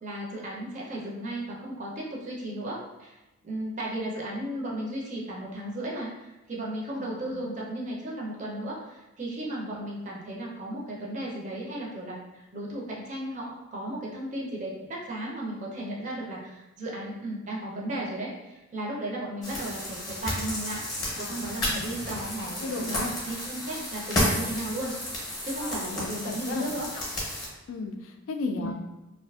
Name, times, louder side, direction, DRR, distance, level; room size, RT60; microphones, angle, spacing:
voice 1, 0.0-3.2 3.4-24.9 25.4-26.9 28.6-28.7, right 1 dB, 35° right, -3 dB, 0.5 m, -35 dB
voice 2, 7.0-7.4 21.2-21.9 22.6-23.1 25.6-26.7 27.7-28.7, left 3 dB, 75° left, 5 dB, 0.3 m, -35 dB
sound 1, 19.4-27.5, left 1 dB, 20° left, 0.7 m, -32 dB
2.5 x 2.4 x 2.3 m, 1.0 s
head